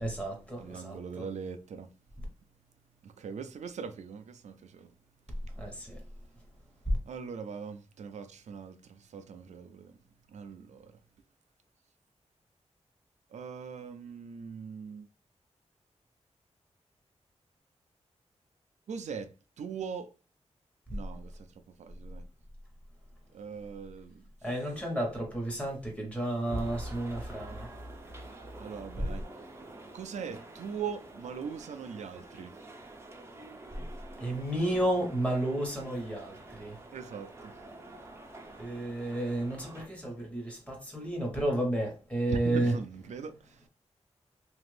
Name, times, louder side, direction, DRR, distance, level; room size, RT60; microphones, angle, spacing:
voice 1, 0.0-1.2 5.6-6.0 6.9-7.0 24.4-27.7 33.7-33.9 34.2-36.8 38.6-42.7, right 1 dB, 10° left, 1.1 m, -32 dB
voice 2, 0.6-1.9 3.0-4.9 7.1-9.9 10.3-10.9 13.3-15.1 18.9-19.3 19.6-20.1 20.9-21.5 21.8-22.2 23.3-24.2 28.6-29.2 29.9-32.5 36.9-37.6 42.3-43.6, right 6 dB, 85° right, 0.4 m, -41 dB
sound 1, 26.4-39.9, right 2 dB, 20° right, 0.5 m, -49 dB
2.9 x 2.5 x 3.2 m
wide cardioid pair, 130°, 12 cm